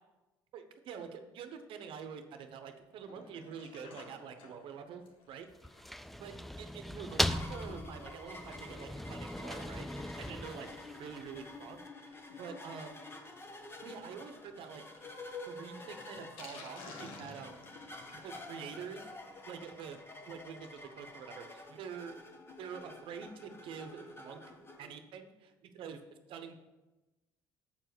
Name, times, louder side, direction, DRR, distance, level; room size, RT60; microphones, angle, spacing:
voice 1, 0.5-5.5 5.9-6.3 6.6-10.7 10.9-13.1 13.8-15.1 15.4-19.1 19.5-22.1 22.6-26.0 26.3-26.6, right 6 dB, 65° right, 8 dB, 0.9 m, -47 dB
Sink (filling or washing), 2.9-21.0 21.3-21.4 21.6-21.7 22.0-22.1, left 3 dB, 70° left, 1.3 m, -57 dB
sound 1, 5.5-11.5, equal, ahead, 0.4 m, -38 dB
sound 2, 7.1-24.8, left 2 dB, 25° left, 1.2 m, -49 dB
7.4 x 4.7 x 6.1 m, 1.1 s
supercardioid pair, 65°, 9 cm